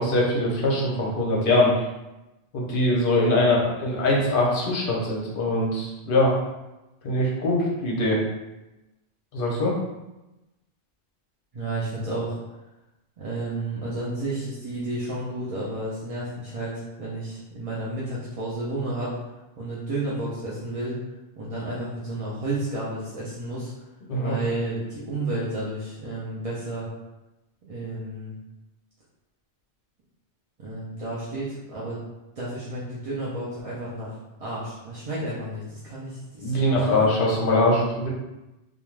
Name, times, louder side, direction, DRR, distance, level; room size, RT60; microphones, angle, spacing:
voice 1, 0.0-1.7 2.5-6.3 7.0-8.2 9.3-9.7 24.1-24.4 36.4-38.1, left 1 dB, 55° left, -3 dB, 0.8 m, -22 dB
voice 2, 11.5-12.4 13.2-16.7 17.0-19.1 19.6-21.0 21.4-23.7 24.2-26.9 27.6-28.4 30.6-32.0 32.4-37.0, right 2 dB, 45° right, -8 dB, 0.5 m, -31 dB
2.4 x 2.3 x 3.1 m, 1.0 s
omnidirectional pair, 1.2 m